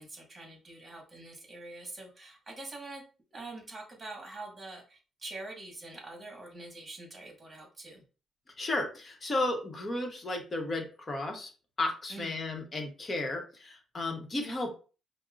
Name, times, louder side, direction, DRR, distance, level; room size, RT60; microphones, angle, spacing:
voice 1, 0.0-3.0 3.3-8.0 12.1-12.3, right 2 dB, 30° right, 0 dB, 1.5 m, -45 dB
voice 2, 8.6-11.5 11.8-14.7, left 2 dB, 30° left, 3 dB, 1.0 m, -33 dB
5.2 x 2.1 x 2.5 m, 0.36 s
cardioid pair, 90°, 0 cm